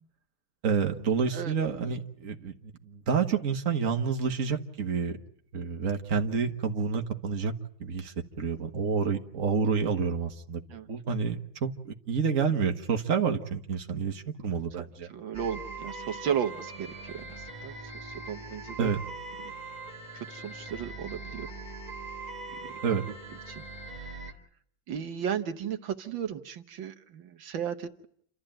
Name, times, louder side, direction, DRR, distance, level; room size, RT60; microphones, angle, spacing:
voice 1, 0.6-5.2 5.5-7.5 7.8-10.6 10.9-15.1 18.8-19.0 22.8-23.0, right 6 dB, 45° right, 4 dB, 1.8 m, -29 dB
voice 2, 15.1-19.0 19.4-19.5 20.1-21.5 22.5-23.0 23.5-23.6 23.9-24.1 24.9-28.1, right 8 dB, 80° right, 7 dB, 1.9 m, -35 dB
sound 1, 15.3-24.3, right 3 dB, 20° right, 2.1 m, -41 dB
29.0 x 13.5 x 9.0 m, 0.66 s
omnidirectional pair, 2.1 m